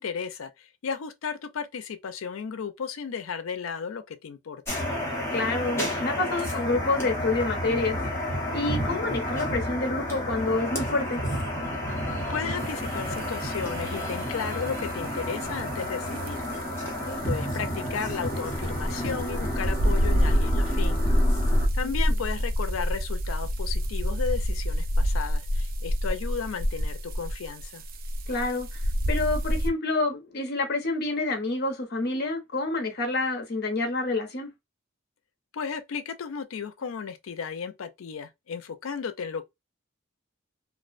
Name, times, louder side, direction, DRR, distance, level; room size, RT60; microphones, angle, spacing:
voice 1, 0.0-4.8 12.3-16.4 17.2-21.0 21.7-27.8 35.5-39.4, left 6 dB, 85° left, 0.4 m, -34 dB
sound 1, 4.7-21.7, equal, 15° left, 0.8 m, -31 dB
voice 2, 5.3-8.0 8.5-11.2 17.1-17.2 21.8-22.2 28.3-28.8 29.1-34.5, left 2 dB, 55° left, 0.7 m, -28 dB
sound 2, 12.6-29.7, equal, 45° right, 0.4 m, -28 dB
2.4 x 2.1 x 2.4 m
head